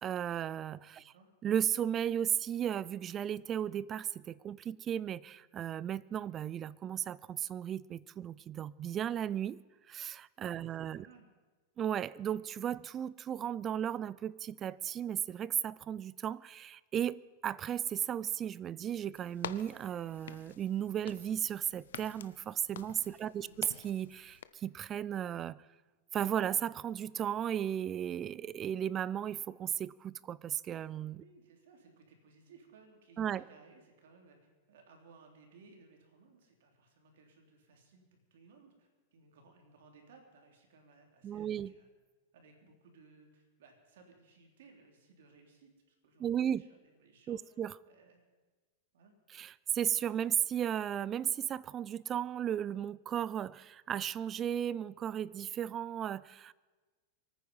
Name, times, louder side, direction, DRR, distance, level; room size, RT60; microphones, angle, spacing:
voice 1, 0.0-1.1 1.4-9.6 9.9-11.1 11.8-25.6 26.1-31.2 33.2-33.4 41.2-41.7 46.2-46.6 47.3-47.7 49.3-56.5, right 9 dB, 25° right, 0.4 m, -35 dB
voice 2, 0.9-1.3 10.4-11.3 23.1-23.6 31.2-41.9 42.3-47.5 47.8-48.2 48.9-49.1, right 4 dB, 75° right, 3.5 m, -61 dB
sound 1, 19.1-24.4, left 9 dB, 90° left, 0.7 m, -48 dB
24.0 x 9.4 x 5.6 m
supercardioid pair, 145°, 0 cm